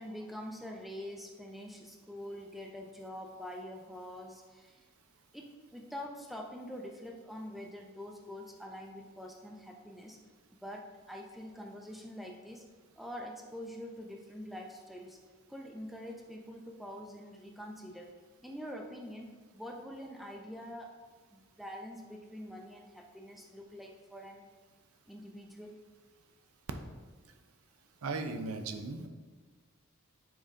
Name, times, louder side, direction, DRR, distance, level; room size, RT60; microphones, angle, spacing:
voice 1, 0.0-4.8 5.3-10.2 10.5-12.6 13.0-15.2 15.5-18.1 18.4-20.9 21.3-24.5 25.1-25.8, equal, ahead, 0 dB, 0.5 m, -45 dB
voice 2, 28.0-29.1, right 3 dB, 90° right, 7 dB, 0.5 m, -37 dB
7.4 x 5.1 x 2.5 m, 1.4 s
head